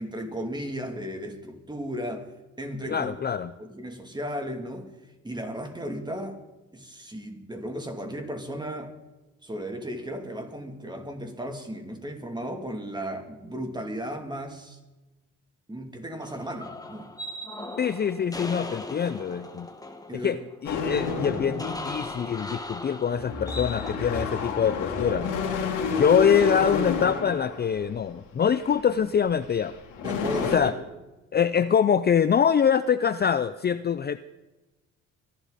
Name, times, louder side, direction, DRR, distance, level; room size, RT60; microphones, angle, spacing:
voice 1, 0.0-2.3 2.6-3.2 3.6-4.9 5.2-6.4 6.7-8.9 9.4-14.8 15.7-17.1 20.1-20.4 25.4-26.1 30.0-30.7, equal, 15° right, 4 dB, 2.9 m, -35 dB
voice 2, 2.9-3.5 17.8-19.7 20.1-20.4 20.6-25.3 26.0-29.7 30.5-30.7 31.3-34.2, left 7 dB, 35° left, 13 dB, 0.6 m, -24 dB
sound 1, 16.2-24.0, left 2 dB, 10° left, 1.6 m, -38 dB
sound 2, 20.6-22.3 23.1-27.9 28.6-28.8 29.5-29.6 29.9-30.6, left 5 dB, 90° left, 3.1 m, -30 dB
24.0 x 11.5 x 4.2 m, 1.1 s
cardioid pair, 90°, 30 cm